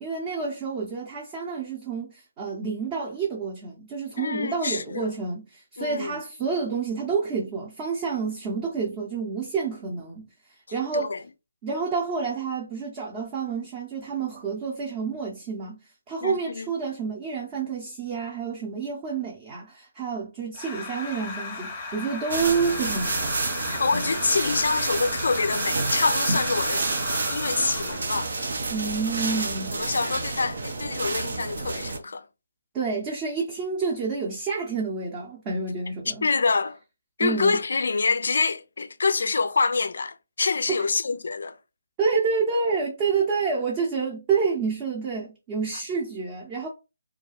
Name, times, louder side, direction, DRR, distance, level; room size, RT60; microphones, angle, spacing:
voice 1, 0.0-10.3 10.7-11.1 11.6-15.8 16.1-23.4 23.9-24.1 28.7-29.9 32.7-36.3 37.2-37.6 40.7-40.8 42.0-46.7, right 5 dB, 25° right, 0.7 m, -29 dB
voice 2, 4.2-5.1 5.8-6.2 10.9-11.2 16.2-16.7 23.7-26.9 27.3-28.3 29.7-32.3 36.2-36.8 37.2-41.6, left 4 dB, 65° left, 0.3 m, -26 dB
sound 1, 20.5-28.2, left 4 dB, 25° left, 0.6 m, -36 dB
sound 2, 22.3-32.0, right 3 dB, 60° right, 0.6 m, -29 dB
2.4 x 2.2 x 3.0 m
figure-of-eight pair, 150°, 0 cm